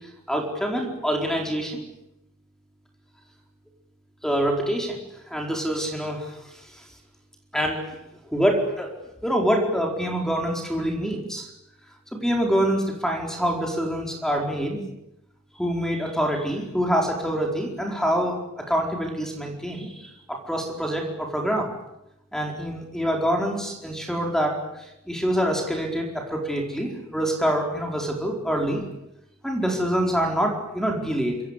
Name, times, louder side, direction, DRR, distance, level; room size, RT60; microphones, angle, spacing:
voice 1, 0.3-1.8 4.2-5.0 5.3-6.6 7.5-8.0 8.3-8.9 9.2-11.5 12.1-14.8 15.6-21.7 22.3-24.6 25.1-28.8 29.4-31.4, equal, ahead, 1 dB, 4.6 m, -25 dB
26.5 x 24.5 x 8.4 m, 0.88 s
head